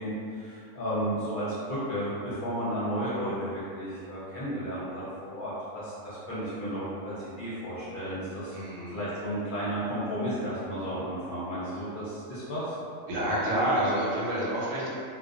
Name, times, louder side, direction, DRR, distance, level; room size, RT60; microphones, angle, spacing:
voice 1, 0.0-8.5 8.9-12.8, equal, 50° left, -10 dB, 0.6 m, -33 dB
voice 2, 8.5-9.0 13.1-14.9, right 1 dB, 90° right, -7 dB, 1.1 m, -28 dB
2.4 x 2.1 x 2.4 m, 2.3 s
omnidirectional pair, 1.3 m